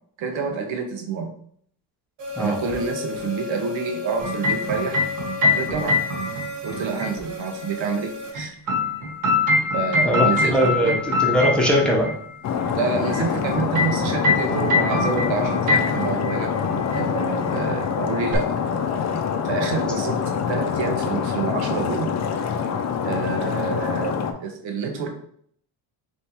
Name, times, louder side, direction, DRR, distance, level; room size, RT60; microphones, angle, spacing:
voice 1, 0.2-1.3 2.4-5.0 5.4-6.0 6.6-8.5 9.7-11.0 12.7-16.5 16.9-18.6 19.4-20.2 20.5-22.1 23.0-25.1, right 5 dB, 90° right, 3 dB, 1.0 m, -28 dB
sound 1, 2.2-8.3, left 4 dB, 65° right, 1.5 m, -34 dB
sound 2, 4.2-7.1 8.3-12.1 13.1-16.4 16.6-17.0 18.3-18.4, left 3 dB, 45° right, 1.1 m, -23 dB
voice 2, 10.0-12.1, equal, ahead, -2 dB, 0.8 m, -20 dB
Stream, 12.4-24.3, left 7 dB, 40° left, 0.4 m, -25 dB
3.4 x 3.0 x 4.3 m, 0.62 s
cardioid pair, 160°, 44 cm